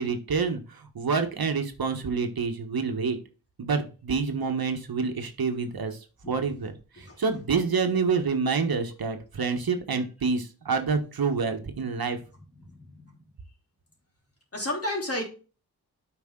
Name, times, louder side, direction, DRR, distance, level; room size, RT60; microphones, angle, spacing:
voice 1, 0.0-3.2 3.6-6.0 6.3-12.2, right 5 dB, 65° right, 6 dB, 1.3 m, -27 dB
voice 2, 12.6-13.1 14.5-15.2, left 1 dB, 35° left, 0 dB, 3.5 m, -32 dB
8.3 x 5.4 x 3.8 m, 0.34 s
cardioid pair, 55°, 39 cm